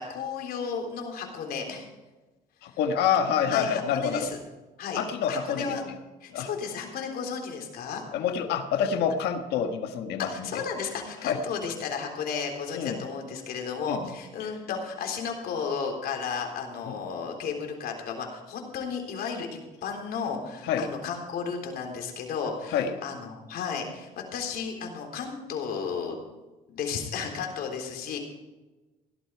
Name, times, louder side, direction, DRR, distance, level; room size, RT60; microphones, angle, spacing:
voice 1, 0.0-1.9 3.5-4.4 4.8-5.0 5.3-5.8 6.2-8.0 10.2-26.2 26.7-28.2, left 6 dB, 65° left, 2 dB, 3.8 m, -33 dB
voice 2, 2.6-4.3 4.9-5.8 6.3-6.5 8.1-10.6 11.3-11.4 12.7-13.0 13.9-14.1 16.9-17.0 20.6-20.9 22.7-22.9, left 7 dB, 80° left, 6 dB, 1.5 m, -27 dB
17.0 x 12.0 x 4.7 m, 1.2 s
cardioid pair, 110°, 17 cm